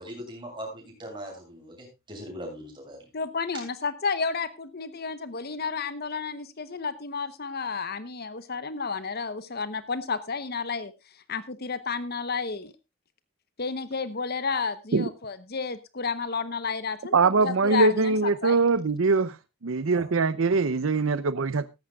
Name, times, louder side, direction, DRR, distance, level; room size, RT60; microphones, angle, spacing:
voice 1, 0.0-3.0 19.9-20.0, equal, 25° right, 7.5 m, -40 dB
voice 2, 3.1-10.9 11.3-12.7 13.6-18.2 18.4-18.6, left 5 dB, 50° left, 0.9 m, -31 dB
voice 3, 17.1-19.4 19.6-21.7, right 4 dB, 75° right, 0.7 m, -22 dB
16.5 x 14.0 x 2.3 m
head